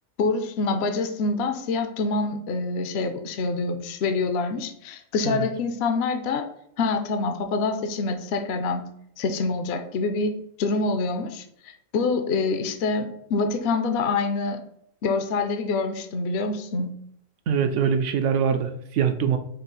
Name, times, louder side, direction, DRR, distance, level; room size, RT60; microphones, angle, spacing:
voice 1, 0.2-6.5 6.8-8.9 9.2-14.6 15.0-16.9, left 3 dB, 65° left, 6 dB, 0.7 m, -26 dB
voice 2, 17.5-19.4, right 7 dB, 75° right, 7 dB, 0.9 m, -23 dB
5.3 x 2.4 x 3.9 m, 0.71 s
omnidirectional pair, 1.3 m